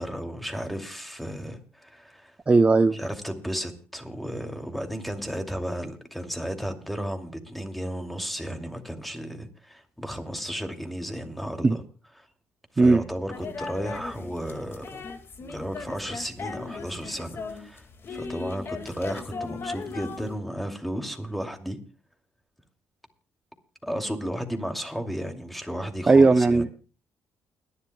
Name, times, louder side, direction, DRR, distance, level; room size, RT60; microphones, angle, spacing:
voice 1, 0.0-2.3 2.9-11.8 12.2-12.3 12.7-15.0 15.5-21.8 23.8-26.6, equal, ahead, 5 dB, 2.6 m, -34 dB
voice 2, 2.5-3.0 11.6-11.8 12.8-13.0 26.1-26.8, right 3 dB, 20° right, 10 dB, 0.7 m, -17 dB
sound 1, 13.3-20.3, left 4 dB, 45° left, 2.0 m, -38 dB
29.5 x 11.0 x 2.3 m, 0.36 s
cardioid pair, 90°, 6 cm